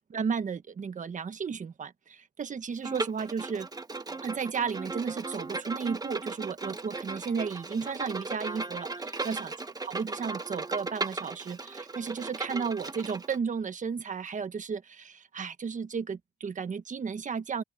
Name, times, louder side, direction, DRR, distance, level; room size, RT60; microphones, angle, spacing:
voice 1, 0.1-3.7 4.2-9.5 9.8-17.6, right 6 dB, 40° right, 1.5 m, -34 dB
Bowed string instrument, 2.8-13.4, right 3 dB, 20° right, 1.3 m, -37 dB
open air
cardioid pair, 90°, 20 cm